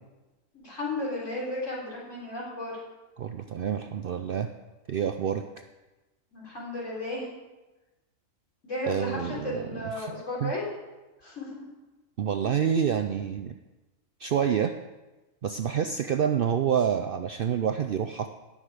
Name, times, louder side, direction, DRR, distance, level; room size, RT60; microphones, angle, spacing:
voice 1, 0.5-2.8 6.3-7.3 8.6-10.7 11.2-11.6, left 1 dB, 65° left, -5 dB, 4.0 m, -34 dB
voice 2, 3.2-4.5 4.9-5.4 8.9-10.5 12.2-13.5 14.2-14.7 15.4-18.3, right 8 dB, 60° right, 7 dB, 0.6 m, -28 dB
18.0 x 6.5 x 5.0 m, 1.1 s
omnidirectional pair, 1.4 m